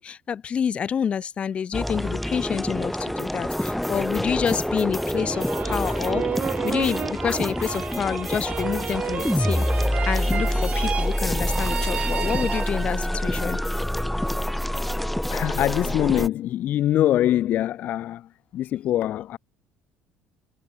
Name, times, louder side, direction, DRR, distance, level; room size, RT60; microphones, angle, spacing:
voice 1, 0.0-6.2 6.6-9.6 10.0-13.6, left 7 dB, 30° left, 1.3 m, -28 dB
sound 1, 1.7-16.3, left 1 dB, ahead, 0.5 m, -26 dB
sound 2, 4.9-13.1, right 8 dB, 30° right, 0.8 m, -32 dB
voice 2, 15.3-19.4, left 12 dB, 45° left, 0.7 m, -24 dB
cardioid pair, 165°, 4 cm